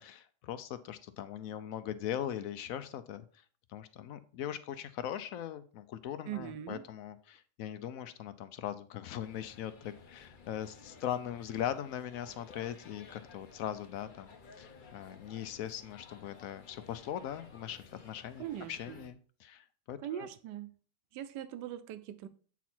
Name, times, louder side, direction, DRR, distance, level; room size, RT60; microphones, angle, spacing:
voice 1, 0.0-3.2 3.7-18.4 18.7-20.3, left 10 dB, 70° left, 12 dB, 0.9 m, -40 dB
voice 2, 6.2-6.9 18.4-19.1 20.0-20.7 21.1-22.3, right 11 dB, 85° right, 12 dB, 1.3 m, -41 dB
sound 1, 9.2-19.1, left 4 dB, 40° left, 0.7 m, -55 dB
8.2 x 4.1 x 4.4 m, 0.42 s
omnidirectional pair, 1.8 m